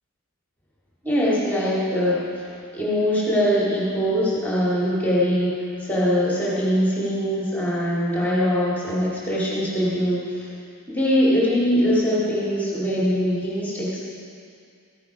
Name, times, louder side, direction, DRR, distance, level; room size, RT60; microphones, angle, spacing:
voice 1, 1.0-2.3 2.7-5.5 5.8-10.5 10.9-14.1, equal, 10° left, -7 dB, 2.3 m, -22 dB
13.5 x 10.0 x 4.8 m, 2.4 s
head